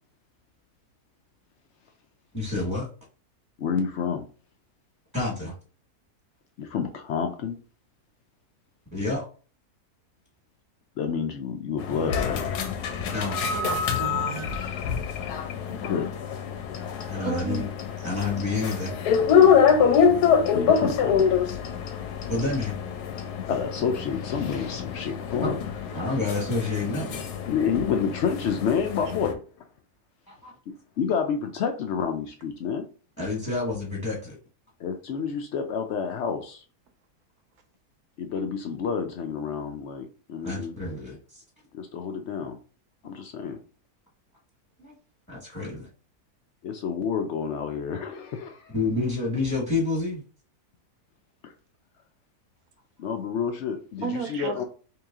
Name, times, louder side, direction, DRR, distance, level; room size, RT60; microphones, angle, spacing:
voice 1, 2.3-2.9 5.1-5.5 8.9-9.3 13.1-13.4 17.1-17.6 18.0-18.9 22.3-22.7 25.4-25.5 25.9-27.2 30.3-30.5 33.2-34.3 40.4-41.4 44.8-44.9 45.3-45.9 48.7-50.2, left 3 dB, 15° left, 1.1 m, -28 dB
voice 2, 3.6-4.3 6.6-7.6 11.0-12.5 15.7-16.1 20.5-21.5 23.3-25.6 27.5-29.4 30.7-32.9 34.8-36.6 38.2-40.8 41.7-42.6 43.0-43.6 46.6-48.7 51.4-51.5 53.0-54.6, left 6 dB, 75° left, 0.6 m, -29 dB
sound 1, 11.8-29.3, left 7 dB, 90° left, 1.2 m, -25 dB
voice 3, 13.5-14.9 17.2-17.7 54.0-54.6, right 6 dB, 75° right, 1.2 m, -33 dB
3.1 x 2.9 x 3.5 m
omnidirectional pair, 1.7 m